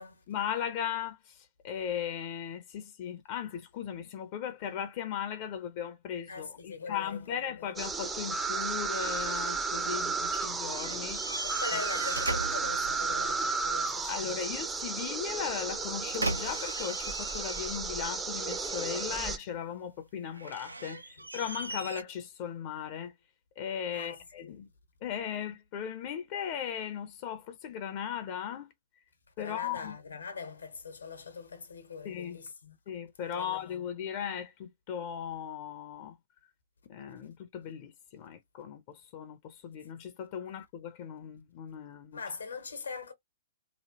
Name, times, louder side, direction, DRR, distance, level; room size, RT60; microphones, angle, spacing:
voice 1, 0.3-11.2 11.7-11.8 14.0-23.1 23.6-24.7 25.0-28.7 29.4-30.0 32.0-32.4 32.9-36.2 36.9-42.2, left 8 dB, 40° left, 0.6 m, -37 dB
voice 2, 6.3-7.2 7.6-7.7 11.4-14.4 19.1-19.2 21.2-21.3 23.9-24.6 29.4-32.8 33.3-33.8 42.1-43.1, left 5 dB, 75° left, 1.0 m, -42 dB
sound 1, 7.8-19.4, right 4 dB, 10° right, 0.5 m, -33 dB
sound 2, 10.7-13.4 15.6-18.1 18.5-19.3 20.3-22.0, right 2 dB, 85° right, 0.5 m, -38 dB
3.0 x 2.4 x 2.8 m
figure-of-eight pair, 115°, 0 cm